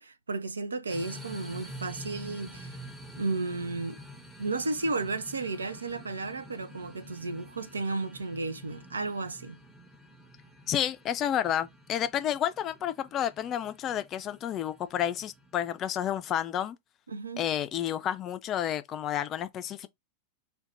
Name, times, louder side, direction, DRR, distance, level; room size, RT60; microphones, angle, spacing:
voice 1, 0.0-2.8 3.2-4.0 4.4-9.6 17.1-17.4, right 3 dB, 75° right, 0.4 m, -33 dB
sound 1, 0.9-16.0, equal, 5° right, 0.8 m, -48 dB
voice 2, 10.7-16.8 17.4-19.9, left 10 dB, 30° left, 0.3 m, -30 dB
2.4 x 2.2 x 3.9 m
figure-of-eight pair, 90°, 0 cm